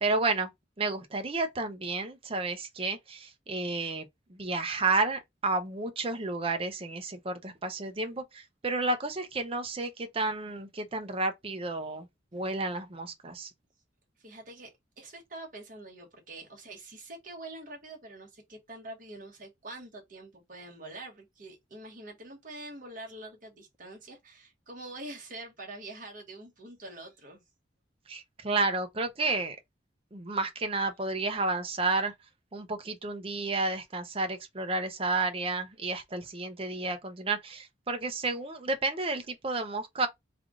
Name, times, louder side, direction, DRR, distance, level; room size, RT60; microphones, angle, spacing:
voice 1, 0.0-0.5 0.8-12.1 12.3-13.5 28.1-29.6 30.1-32.1 32.5-40.1, right 3 dB, 30° right, 0.6 m, -31 dB
voice 2, 14.2-14.7 15.0-27.4, right 2 dB, 45° right, 1.3 m, -45 dB
3.4 x 2.4 x 3.6 m
head